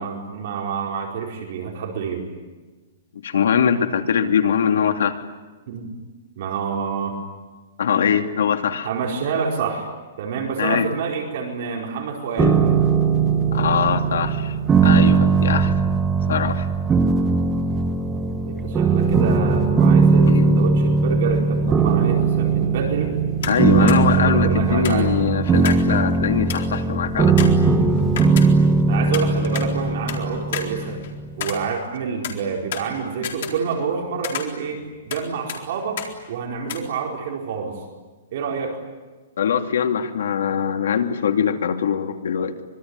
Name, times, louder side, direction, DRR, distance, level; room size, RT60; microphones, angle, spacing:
voice 1, 0.0-2.3 5.7-5.9 6.4-7.2 8.8-9.9 10.2-12.5 18.1-23.2 23.6-25.2 28.9-31.0 31.4-37.7 38.3-38.8, right 6 dB, 45° right, 0 dB, 4.7 m, -27 dB
voice 2, 3.2-5.2 7.8-8.9 10.6-10.9 12.4-12.5 13.5-14.5 14.8-15.7 16.3-16.7 20.2-20.6 23.5-27.6 39.4-42.6, left 7 dB, 80° left, 5 dB, 2.8 m, -22 dB
sound 1, 12.4-31.3, right 4 dB, 10° right, 1.1 m, -19 dB
sound 2, 23.4-23.6 23.9-24.0 24.8-25.9 26.2-26.3 26.5-26.8 27.4-28.8 29.1-30.2 30.5-32.0 32.2-33.9 34.2-35.2 35.5-35.6 36.0-36.1 36.7-36.8, left 9 dB, 50° left, 4.0 m, -32 dB
25.5 x 23.5 x 9.7 m, 1.3 s
hypercardioid pair, 175°, 0 cm